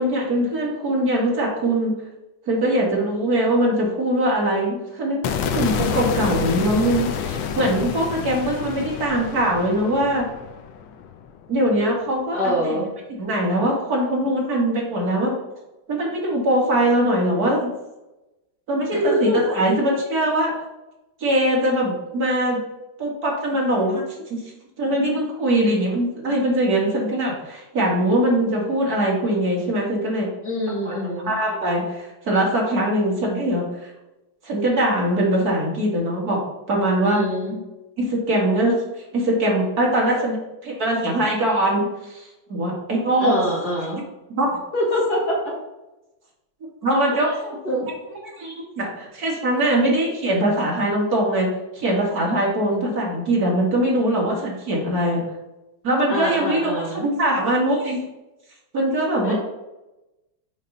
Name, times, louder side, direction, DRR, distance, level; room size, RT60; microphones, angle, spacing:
voice 1, 0.0-1.9 2.5-10.3 11.5-12.4 12.6-12.7 13.1-15.3 15.9-17.7 18.7-20.5 21.2-22.6 23.0-24.0 24.3-24.4 24.8-30.3 30.8-31.0 31.2-33.9 34.4-36.4 36.7-37.2 38.0-38.7 39.1-43.4 44.4-44.5 46.8-47.6 47.9-51.5 51.8-55.2 55.8-58.0 58.7-59.3, right 1 dB, 50° right, -3 dB, 2.4 m, -22 dB
sound 1, 5.2-11.5, left 7 dB, 85° left, 1.4 m, -28 dB
voice 2, 12.3-12.9 18.9-19.4 25.6-25.7 30.4-31.3 37.0-37.6 43.2-44.0 44.7-45.5 47.1-47.4 47.6-47.9 56.1-57.1 59.2-59.3, equal, 55° left, -4 dB, 2.5 m, -24 dB
6.6 x 5.5 x 4.0 m, 0.99 s
omnidirectional pair, 2.0 m